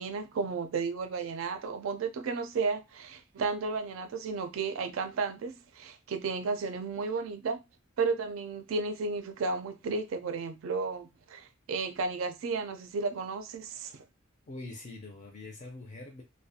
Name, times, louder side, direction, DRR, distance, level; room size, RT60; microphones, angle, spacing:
voice 1, 0.0-7.6 8.0-14.0, right 4 dB, 70° right, 0.4 m, -33 dB
voice 2, 14.5-16.2, left 2 dB, 35° left, 0.4 m, -44 dB
2.4 x 2.1 x 2.6 m
head